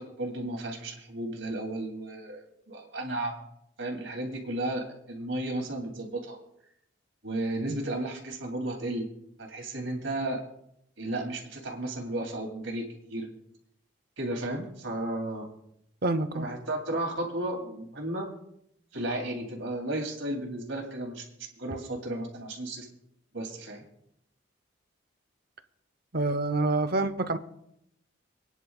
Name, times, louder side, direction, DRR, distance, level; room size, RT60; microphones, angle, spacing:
voice 1, 0.0-3.4 3.8-6.4 7.2-9.1 9.4-10.4 11.0-13.3 14.2-15.5 16.3-18.3 18.9-21.3 21.6-22.9 23.3-23.8, right 1 dB, 70° right, 3.0 m, -34 dB
voice 2, 16.0-16.5 26.1-27.4, right 2 dB, 50° right, 0.8 m, -27 dB
27.5 x 10.0 x 2.4 m
head